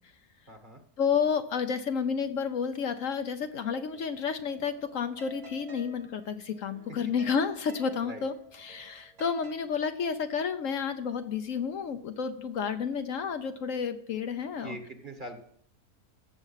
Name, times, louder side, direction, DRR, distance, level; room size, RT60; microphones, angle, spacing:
voice 1, 0.5-0.8 8.0-8.2 14.6-15.4, right 2 dB, 35° right, 6 dB, 1.4 m, -42 dB
voice 2, 1.0-8.3 8.6-14.8, left 6 dB, 65° left, 8 dB, 1.0 m, -31 dB
sound 1, 3.9-9.6, right 5 dB, 70° right, 2.0 m, -52 dB
15.5 x 7.0 x 5.7 m, 0.65 s
omnidirectional pair, 1.6 m